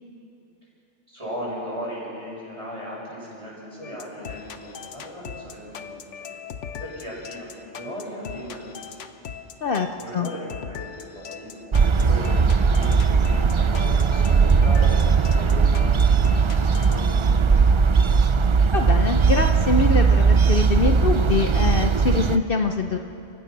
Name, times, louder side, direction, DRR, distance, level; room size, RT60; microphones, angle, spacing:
voice 1, 1.1-8.8 9.1-9.2 10.0-18.1, equal, 25° right, -6 dB, 7.0 m, -37 dB
sound 1, 3.8-17.0, left 7 dB, 85° left, 1.2 m, -39 dB
voice 2, 9.6-10.3 18.7-23.0, left 4 dB, 55° left, 5 dB, 0.9 m, -24 dB
sound 2, 11.7-22.4, right 5 dB, 45° right, 0.4 m, -18 dB
28.5 x 15.5 x 6.0 m, 2.7 s
omnidirectional pair, 1.2 m